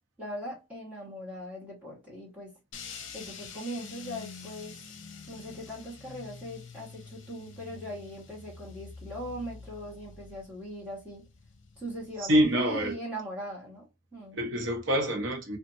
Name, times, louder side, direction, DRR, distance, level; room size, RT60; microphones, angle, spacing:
voice 1, 0.2-2.5 3.1-4.7 5.3-11.3 11.8-13.8 14.1-14.4, equal, 10° right, 1.2 m, -40 dB
sound 1, 2.7-12.9, left 5 dB, 65° left, 0.6 m, -47 dB
voice 2, 12.2-13.0 14.3-15.6, equal, 65° right, 0.7 m, -26 dB
2.7 x 2.4 x 2.6 m
head